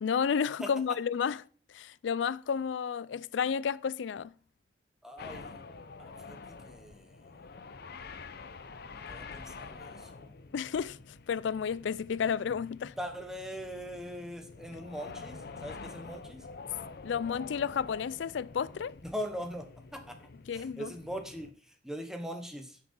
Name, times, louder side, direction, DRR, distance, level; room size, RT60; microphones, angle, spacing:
voice 1, 0.0-1.4 1.7-4.3 10.5-12.9 17.0-19.0 20.5-20.9, left 7 dB, 75° left, 0.4 m, -31 dB
voice 2, 5.0-5.6 6.0-7.4 8.9-10.3 13.0-16.4 19.0-20.2 20.5-21.5 21.8-22.8, equal, 5° right, 1.0 m, -41 dB
sound 1, 5.2-21.5, left 4 dB, 60° left, 0.7 m, -47 dB
9.4 x 6.1 x 4.5 m
head